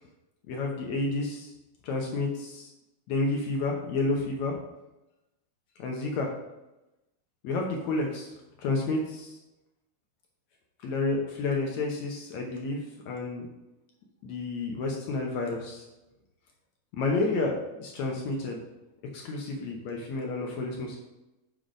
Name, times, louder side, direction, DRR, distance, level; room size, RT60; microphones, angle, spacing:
voice 1, 0.5-1.5 1.8-2.7 3.1-4.5 5.8-6.3 7.4-8.3 8.6-9.3 10.8-13.5 14.2-15.9 17.0-18.6 19.1-21.0, left 3 dB, 75° left, 0 dB, 1.6 m, -30 dB
7.0 x 3.9 x 5.0 m, 0.97 s
omnidirectional pair, 4.3 m